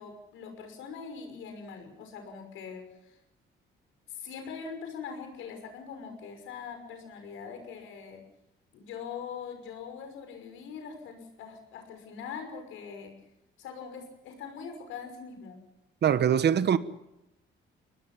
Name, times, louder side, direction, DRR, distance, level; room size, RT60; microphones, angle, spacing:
voice 1, 0.0-3.2 4.1-8.2 8.7-13.1 13.6-15.6, left 6 dB, 90° left, 6.0 m, -42 dB
voice 2, 16.0-16.8, right 9 dB, 60° right, 1.3 m, -22 dB
22.5 x 19.5 x 7.3 m
cardioid pair, 90°, 20 cm